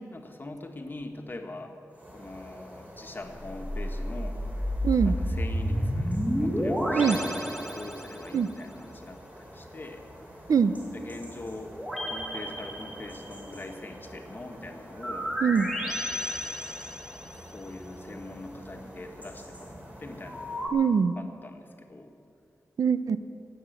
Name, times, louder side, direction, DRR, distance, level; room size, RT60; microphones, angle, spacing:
voice 1, 0.1-1.7 2.1-4.4 5.0-10.0 10.9-11.8 12.1-15.3 15.9-16.6 17.3-20.8 21.2-22.1, left 2 dB, 35° left, 4 dB, 1.5 m, -43 dB
sound 1, 1.9-20.7, equal, 25° right, 3.2 m, -47 dB
sound 2, 3.3-8.4 11.7-13.5 14.9-17.5 20.2-20.7, equal, 5° right, 1.9 m, -31 dB
voice 2, 4.8-5.1 6.9-7.2 8.3-8.5 10.5-10.7 15.4-15.7 20.7-21.1 22.8-23.2, right 6 dB, 75° right, 12 dB, 0.6 m, -23 dB
17.0 x 7.9 x 7.9 m, 2.6 s
wide cardioid pair, 110°, 6 cm